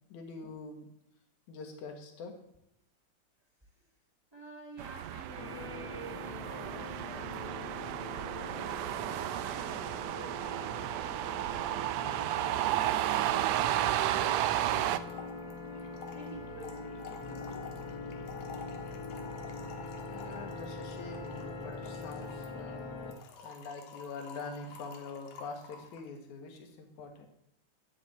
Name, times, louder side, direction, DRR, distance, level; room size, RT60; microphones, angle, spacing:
voice 1, 0.1-0.9 1.5-2.3 19.5-19.6 20.0-27.3, left 4 dB, 75° left, 3 dB, 2.9 m, -45 dB
voice 2, 4.3-8.6 9.0-11.9 12.3-15.4 16.1-17.7, right 1 dB, 15° right, -1 dB, 1.1 m, -50 dB
sound 1, 4.8-15.0, right 14 dB, 90° right, 1.5 m, -33 dB
sound 2, 5.4-23.1, left 3 dB, 40° left, 1.6 m, -43 dB
Trickle dribble / Fill (with liquid), 12.4-12.5 12.7-12.8 13.0-26.1, left 4 dB, 90° left, 2.9 m, -50 dB
13.5 x 9.0 x 4.2 m, 0.77 s
omnidirectional pair, 3.5 m